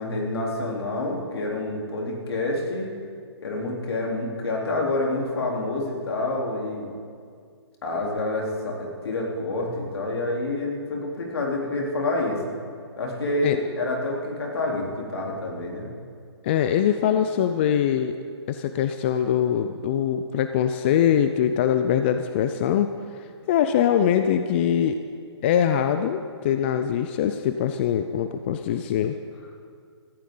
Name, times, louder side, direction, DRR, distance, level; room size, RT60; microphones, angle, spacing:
voice 1, 0.0-2.9 3.4-6.9 7.8-12.4 13.0-15.9, left 2 dB, 60° left, -2 dB, 3.5 m, -28 dB
voice 2, 16.4-18.1 18.5-22.9 23.2-25.0 25.4-29.2, left 9 dB, 25° left, 8 dB, 0.4 m, -23 dB
18.0 x 14.5 x 3.9 m, 2.2 s
hypercardioid pair, 155°, 15 cm